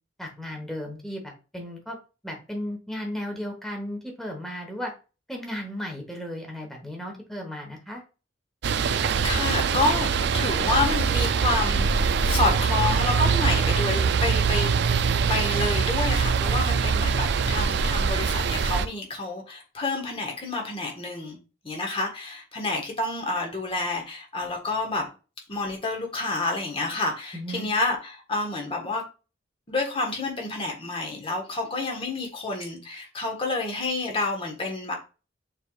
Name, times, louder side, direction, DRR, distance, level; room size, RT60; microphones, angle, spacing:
voice 1, 0.2-2.0 2.2-4.9 5.3-8.0 27.3-27.7, equal, ahead, 1.2 m, -35 dB
sound 1, 8.6-18.9, right 5 dB, 65° right, 0.4 m, -23 dB
voice 2, 9.2-14.8 15.3-21.4 21.6-25.1 25.5-29.0 29.7-34.9, left 2 dB, 30° left, 1.4 m, -29 dB
6.5 x 3.4 x 2.4 m
head